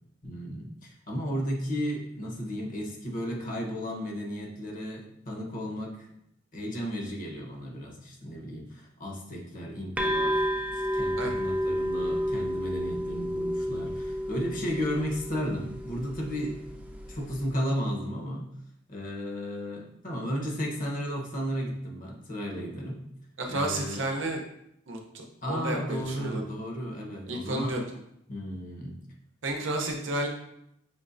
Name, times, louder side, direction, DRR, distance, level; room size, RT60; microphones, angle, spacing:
voice 1, 0.2-6.1 6.5-10.5 10.7-16.6 17.1-18.5 18.9-23.0 23.5-24.0 25.4-27.7 28.3-29.0, equal, 45° left, 0 dB, 0.9 m, -34 dB
sound 1, 10.0-17.5, equal, 5° right, 0.4 m, -31 dB
voice 2, 23.4-24.4 24.9-26.4 27.3-27.8 29.4-30.3, right 1 dB, 70° right, 2 dB, 0.7 m, -31 dB
5.5 x 3.2 x 2.5 m, 0.78 s
head